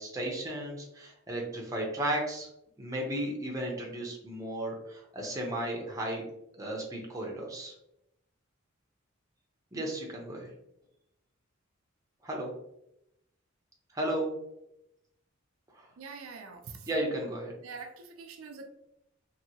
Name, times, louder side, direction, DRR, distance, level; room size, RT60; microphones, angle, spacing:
voice 1, 0.0-2.5 2.8-6.3 6.5-7.7 9.7-10.5 12.2-12.5 13.9-14.4 15.7-15.9 16.9-17.5, right 1 dB, 15° right, -1 dB, 0.6 m, -34 dB
voice 2, 16.0-16.6 17.6-18.7, right 4 dB, 80° right, 4 dB, 0.4 m, -44 dB
2.8 x 2.6 x 2.7 m, 0.81 s
head